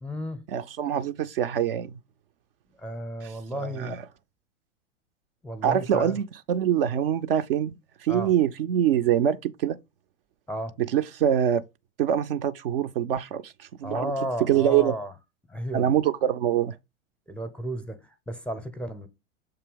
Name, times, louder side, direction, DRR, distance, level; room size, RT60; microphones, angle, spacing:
voice 1, 0.0-0.5 2.8-4.0 5.4-6.2 8.1-8.3 10.5-10.8 13.8-15.1 15.5-16.0 17.3-19.1, equal, 5° left, 0.6 m, -33 dB
voice 2, 0.5-2.0 3.6-4.0 5.6-7.7 8.0-9.8 10.9-11.6 12.0-14.1 14.4-14.9 15.7-16.8, right 10 dB, 50° right, 0.5 m, -24 dB
6.8 x 2.8 x 5.2 m
figure-of-eight pair, 90°, 37 cm